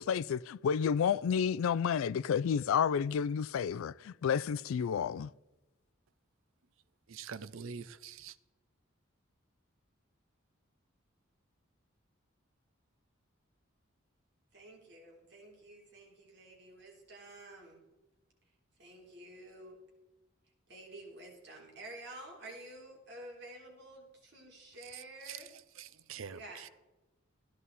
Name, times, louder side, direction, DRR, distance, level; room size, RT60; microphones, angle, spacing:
voice 1, 0.0-5.3, left 7 dB, 85° left, 0.3 m, -30 dB
voice 2, 7.1-8.3 24.9-25.4 25.8-26.7, right 6 dB, 75° right, 0.5 m, -45 dB
voice 3, 14.5-17.8 18.8-19.8 20.7-25.5 26.3-26.7, right 1 dB, 55° right, 3.6 m, -50 dB
14.5 x 10.5 x 4.1 m
head